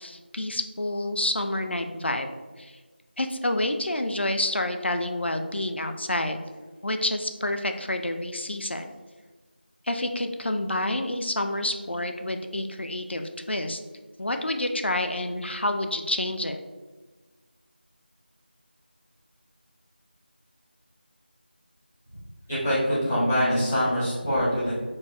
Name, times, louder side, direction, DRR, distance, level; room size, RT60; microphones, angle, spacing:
voice 1, 0.0-2.3 2.6-2.7 3.2-6.4 6.8-8.9 9.9-13.8 14.2-16.6, left 1 dB, 80° left, 6 dB, 0.5 m, -28 dB
voice 2, 22.5-24.7, equal, ahead, -22 dB, 0.3 m, -24 dB
4.6 x 2.3 x 4.1 m, 1.3 s
figure-of-eight pair, 170°, 6 cm